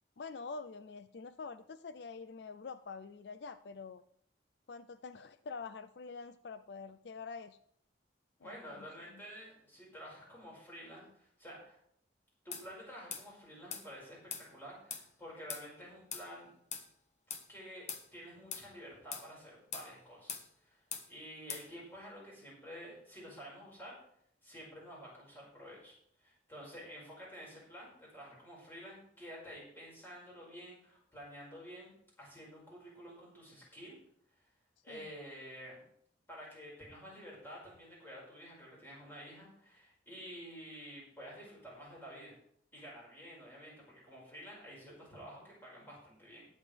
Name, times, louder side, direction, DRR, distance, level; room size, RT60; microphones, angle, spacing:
voice 1, 0.2-4.0 4.7-7.6 8.4-9.2 34.9-35.1, left 4 dB, 65° left, 12 dB, 0.4 m, -46 dB
voice 2, 8.4-11.8 12.4-16.5 17.5-24.0 24.4-34.0 34.4-34.5 34.8-35.8 36.3-42.4 42.7-46.5, equal, 10° left, -5 dB, 5.3 m, -50 dB
sound 1, 12.5-12.7 13.1-13.3 13.7-13.8 14.3-14.5 14.9-15.1 15.5-15.6 16.1-16.3 16.7-16.9 17.3-17.4 17.9-18.0 18.5-18.7 19.1-19.3 19.7-19.9 20.3-20.5 20.9-21.1 21.5-21.7, left 7 dB, 40° left, 1.2 m, -41 dB
19.5 x 7.4 x 3.4 m, 0.69 s
head